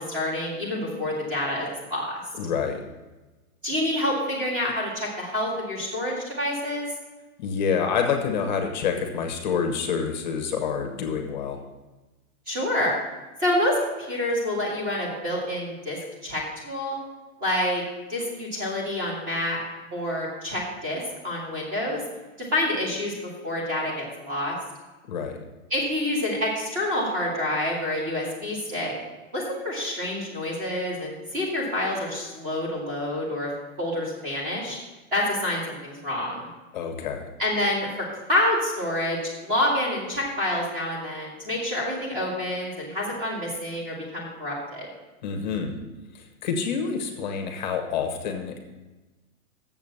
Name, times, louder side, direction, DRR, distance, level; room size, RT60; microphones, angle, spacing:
voice 1, 0.0-2.2 3.6-6.9 12.5-12.9 13.4-17.0 17.4-17.8 18.1-19.6 19.9-22.0 22.4-24.6 25.7-28.9 29.3-33.5 33.8-34.8 35.1-36.5 37.4-37.9 38.3-44.9, left 1 dB, 20° right, -3 dB, 1.9 m, -27 dB
voice 2, 2.4-2.8 7.4-11.6 25.1-25.4 36.7-37.3 45.2-45.8 46.1-48.6, left 6 dB, 30° left, 5 dB, 0.9 m, -27 dB
7.3 x 6.6 x 7.1 m, 1.2 s
hypercardioid pair, 170°, 43 cm